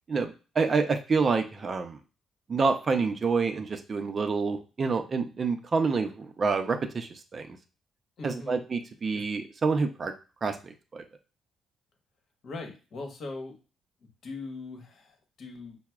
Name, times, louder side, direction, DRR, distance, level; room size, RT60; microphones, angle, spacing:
voice 1, 0.1-2.0 2.5-7.6 8.2-10.1 10.4-11.0, right 4 dB, 40° right, 7 dB, 0.5 m, -28 dB
voice 2, 8.2-8.6 9.1-9.2 12.4-13.5 14.2-15.8, left 3 dB, 60° left, 3 dB, 1.1 m, -40 dB
5.7 x 2.0 x 2.3 m, 0.33 s
cardioid pair, 90°, 0 cm